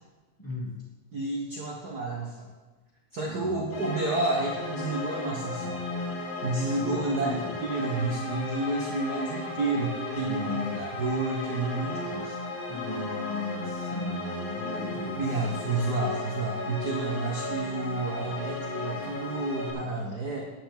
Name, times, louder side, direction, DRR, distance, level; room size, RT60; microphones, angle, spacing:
voice 1, 0.4-0.7 3.2-3.6 6.7-7.5 10.2-10.8 12.7-15.2, left 2 dB, 5° left, -4 dB, 2.3 m, -36 dB
voice 2, 1.1-2.5 3.1-5.9 6.4-12.4 15.2-20.4, right 2 dB, 45° right, -1 dB, 1.4 m, -30 dB
sound 1, 3.7-19.7, left 2 dB, 60° left, 3.0 m, -35 dB
14.5 x 10.0 x 3.9 m, 1.2 s
omnidirectional pair, 3.3 m